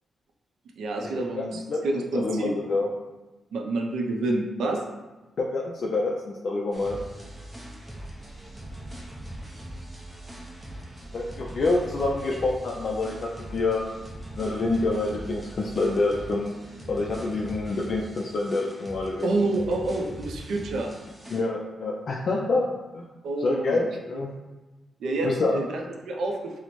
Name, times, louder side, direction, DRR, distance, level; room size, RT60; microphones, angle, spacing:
voice 1, 0.8-2.5 3.5-4.8 19.2-20.9 23.2-23.9 25.0-26.6, right 2 dB, 90° right, 2 dB, 0.4 m, -28 dB
voice 2, 1.3-1.8 2.1-2.9 5.4-7.0 11.1-13.8 14.4-16.5 16.9-19.3 21.3-22.7 22.9-23.0 23.4-24.3 25.2-25.6, left 3 dB, 50° left, -2 dB, 0.3 m, -27 dB
sound 1, 6.7-21.4, right 1 dB, 10° right, 0.5 m, -41 dB
4.2 x 2.0 x 2.9 m, 1.1 s
wide cardioid pair, 145°, 0 cm